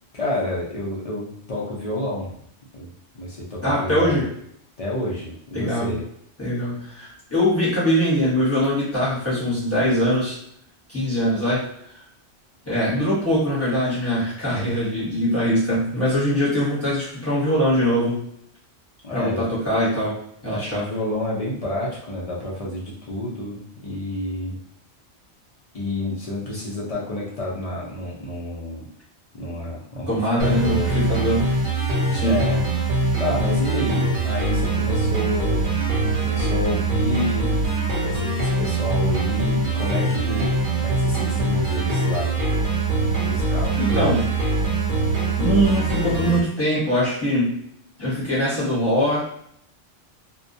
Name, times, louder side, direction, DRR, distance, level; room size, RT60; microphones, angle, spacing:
voice 1, 0.1-2.4 2.7-4.2 4.8-6.0 19.0-19.5 20.5-24.6 25.7-28.9 29.3-30.1 30.4-30.9 32.2-32.6 33.2-35.7 36.2-37.5 38.0-42.4 43.3-43.8, left 1 dB, 45° left, -5 dB, 0.4 m, -29 dB
voice 2, 3.6-4.3 5.5-6.0 6.4-10.4 10.9-11.7 12.6-18.2 19.1-20.2 20.4-20.8 30.1-31.5 32.1-32.4 43.8-44.3 45.4-47.6 48.0-49.3, equal, 15° left, -8 dB, 0.9 m, -22 dB
sound 1, 30.4-46.4, right 2 dB, 50° right, 0.8 m, -23 dB
2.2 x 2.1 x 2.6 m, 0.69 s
omnidirectional pair, 1.2 m